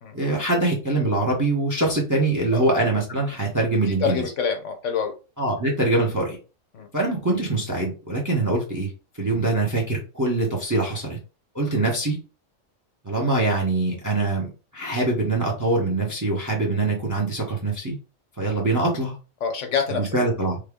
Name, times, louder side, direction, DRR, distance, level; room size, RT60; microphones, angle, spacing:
voice 1, 0.1-4.2 5.4-6.4 6.9-8.9 9.2-11.2 11.5-12.2 13.0-18.0 18.4-19.2 19.9-20.6, right 2 dB, 20° right, -1 dB, 0.6 m, -23 dB
voice 2, 3.9-5.1 6.7-6.9 11.7-11.9 19.4-20.1, left 6 dB, 70° left, 5 dB, 1.0 m, -27 dB
3.3 x 2.2 x 3.5 m, 0.34 s
omnidirectional pair, 1.4 m